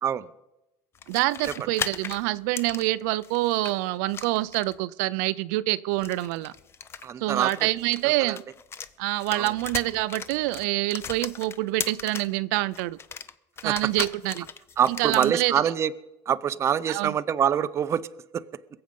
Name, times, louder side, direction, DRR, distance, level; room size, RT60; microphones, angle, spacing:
sound 1, 1.0-3.7 4.1-4.8 5.9-8.9 9.2-12.4 12.7-15.3, left 6 dB, 25° left, 0.6 m, -37 dB
voice 1, 1.1-6.5 7.2-8.4 9.0-13.0 13.6-14.4 15.0-15.5 16.9-17.1, right 18 dB, 90° right, 16 dB, 0.4 m, -26 dB
voice 2, 7.0-7.5 8.0-8.4 9.3-9.5 13.6-13.7 14.8-15.9 16.3-18.1 18.3-18.4, right 8 dB, 30° right, 14 dB, 0.5 m, -25 dB
22.0 x 7.8 x 5.2 m, 0.95 s
cardioid pair, 130°, 9 cm